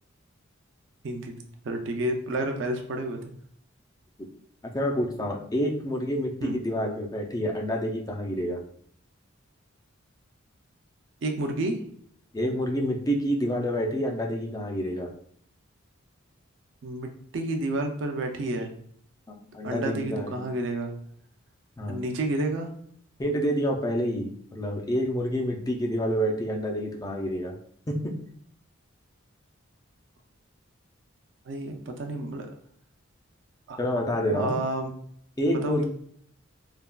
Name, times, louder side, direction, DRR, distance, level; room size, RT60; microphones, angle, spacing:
voice 1, 1.6-3.2 6.4-6.6 11.2-11.8 16.8-18.7 19.6-20.9 21.9-22.7 31.5-32.5 33.7-33.8 34.3-34.9 35.5-35.9, right 1 dB, 60° right, 4 dB, 0.4 m, -30 dB
voice 2, 4.7-8.6 12.3-15.1 19.3-20.4 21.8-22.0 23.2-27.5 27.9-28.1 33.8-34.6 35.4-35.9, equal, 20° left, 1 dB, 0.4 m, -28 dB
3.4 x 2.2 x 2.2 m, 0.63 s
head